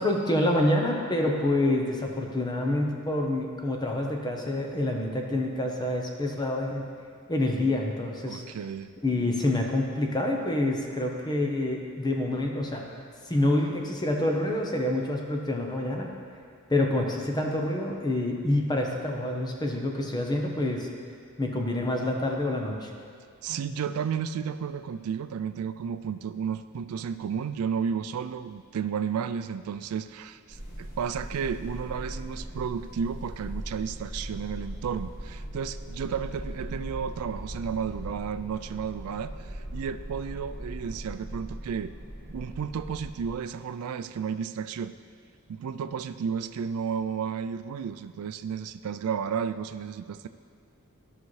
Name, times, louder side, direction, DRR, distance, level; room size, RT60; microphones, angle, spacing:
voice 1, 0.0-6.8 7.3-8.4 9.0-12.8 13.2-16.1 16.7-20.9 21.4-22.9, left 1 dB, 20° left, 1 dB, 0.8 m, -27 dB
voice 2, 8.3-8.9 23.4-41.9 42.3-44.9 45.5-50.3, right 7 dB, 70° right, 11 dB, 0.3 m, -32 dB
sound 1, 30.5-43.3, equal, 40° left, 2.2 m, -39 dB
14.0 x 5.7 x 3.2 m, 2.2 s
head